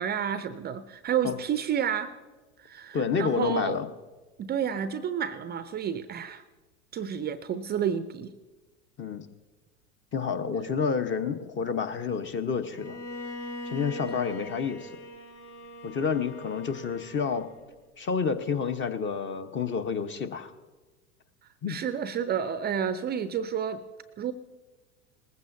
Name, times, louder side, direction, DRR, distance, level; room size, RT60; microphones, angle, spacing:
voice 1, 0.0-2.1 2.6-3.8 4.4-6.4 6.9-8.3 21.7-23.8 24.2-24.3, right 8 dB, 25° right, 12 dB, 0.5 m, -30 dB
voice 2, 2.9-3.9 9.0-9.3 10.1-13.0 13.6-14.9 15.8-17.4 18.0-20.5 21.6-21.8, left 6 dB, 30° left, 9 dB, 1.0 m, -29 dB
Bowed string instrument, 12.7-17.7, equal, 45° left, 1.9 m, -41 dB
19.5 x 15.0 x 2.7 m, 1.2 s
hypercardioid pair, 85°, 41 cm